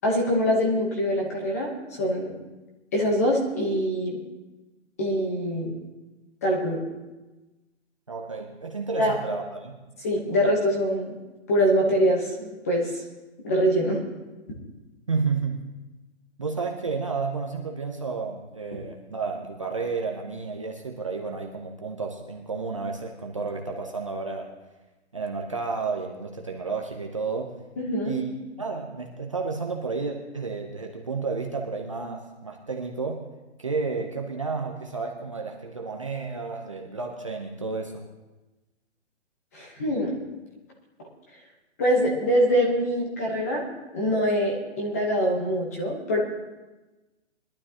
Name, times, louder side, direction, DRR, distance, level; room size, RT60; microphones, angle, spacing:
voice 1, 0.0-1.7 2.0-2.3 2.9-4.2 5.0-5.7 6.4-6.8 9.0-9.1 10.0-11.1 11.5-13.0 13.4-14.0 27.8-28.2 39.5-40.2 41.8-43.6 43.9-46.2, equal, 15° left, -1 dB, 1.0 m, -24 dB
voice 2, 8.1-9.8 15.1-15.7 16.4-24.5 25.1-27.5 28.0-28.2 28.6-33.2 33.6-38.0, right 4 dB, 25° right, 1 dB, 0.6 m, -31 dB
21.0 x 12.0 x 2.8 m, 1.1 s
hypercardioid pair, 175°, 36 cm